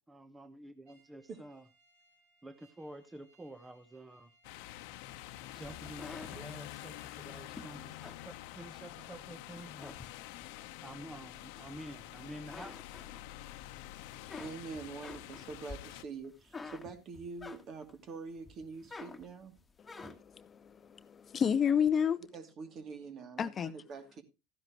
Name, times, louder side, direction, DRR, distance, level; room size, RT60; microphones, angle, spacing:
voice 1, 0.1-1.6 2.4-4.3 5.5-10.0 10.8-13.1, right 1 dB, 10° right, 1.0 m, -49 dB
sound 1, 0.9-7.5, right 3 dB, 70° right, 3.2 m, -68 dB
sound 2, 4.4-16.0, left 15 dB, 70° left, 1.0 m, -47 dB
sound 3, 5.6-9.1 9.5-10.6 11.1-12.1 12.4-13.7 14.0-18.0 18.4-20.4, left 3 dB, 15° left, 1.6 m, -49 dB
voice 2, 14.4-19.5 20.0-20.2 22.3-24.2, right 4 dB, 45° right, 2.7 m, -45 dB
voice 3, 19.8-22.2 23.4-23.7, left 7 dB, 35° left, 0.7 m, -31 dB
13.5 x 10.5 x 3.1 m
supercardioid pair, 100°, 0 cm